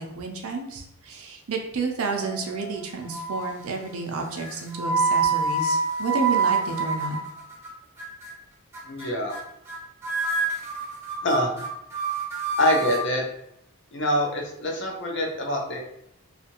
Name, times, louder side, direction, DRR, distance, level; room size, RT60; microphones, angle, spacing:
voice 1, 0.0-7.2, right 4 dB, 70° right, 2 dB, 0.5 m, -30 dB
sound 1, 2.2-2.7 3.1-3.6 4.4-7.7 8.0-8.3 8.7-9.1 9.3-9.4 9.7-9.8 10.0-13.0, right 4 dB, 10° right, 0.6 m, -27 dB
voice 2, 8.9-9.3 11.2-11.5 12.6-13.2 13.9-15.8, left 1 dB, 50° left, 0 dB, 0.6 m, -25 dB
2.7 x 2.5 x 2.8 m, 0.78 s
head